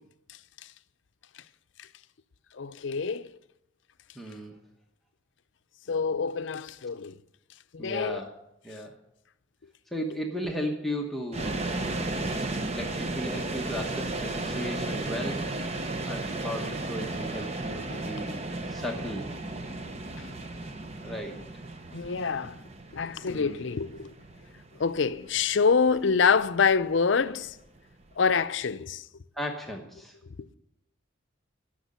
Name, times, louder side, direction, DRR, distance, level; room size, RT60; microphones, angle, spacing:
voice 1, 2.5-3.3 5.9-7.2 7.7-8.2 21.9-22.6 22.9-24.1 24.8-27.5 28.2-29.0, left 5 dB, 70° left, 0.5 m, -26 dB
voice 2, 4.1-4.6 7.8-8.3 8.6-8.9 9.9-12.3 12.7-15.4 15.7-18.4 18.7-19.3 21.0-21.4 23.3-23.6 29.3-30.1, equal, ahead, 1.0 m, -36 dB
sound 1, 11.3-28.3, right 2 dB, 30° right, 0.8 m, -35 dB
12.5 x 6.5 x 9.4 m
head